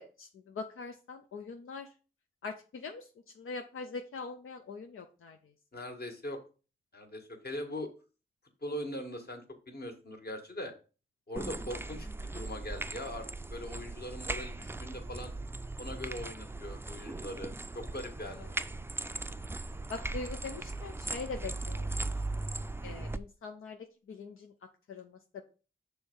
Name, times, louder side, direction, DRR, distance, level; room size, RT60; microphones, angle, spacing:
voice 1, 0.0-1.9 2.4-3.1 3.4-5.4 18.4-18.5 19.9-21.9 22.8-23.8 24.1-24.5 24.9-25.4, left 4 dB, 85° left, 4 dB, 0.6 m, -42 dB
voice 2, 5.7-6.4 6.9-7.9 8.6-10.7 11.3-12.1 12.3-15.3 15.8-18.5, left 1 dB, 50° left, 3 dB, 1.7 m, -41 dB
sound 1, 11.4-23.2, right 2 dB, 10° right, 0.4 m, -38 dB
6.3 x 3.4 x 5.3 m, 0.35 s
cardioid pair, 50°, 21 cm